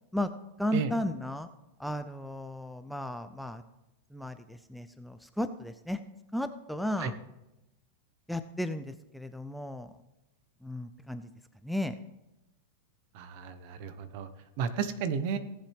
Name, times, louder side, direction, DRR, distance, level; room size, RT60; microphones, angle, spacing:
voice 1, 0.6-1.5 1.8-3.6 4.1-6.0 6.3-7.2 8.3-9.9 10.6-11.2 11.6-11.9, left 1 dB, ahead, 9 dB, 0.4 m, -34 dB
voice 2, 13.1-14.3 14.6-15.4, right 6 dB, 50° right, 11 dB, 1.0 m, -33 dB
17.0 x 7.5 x 3.5 m, 0.93 s
supercardioid pair, 145°, 0 cm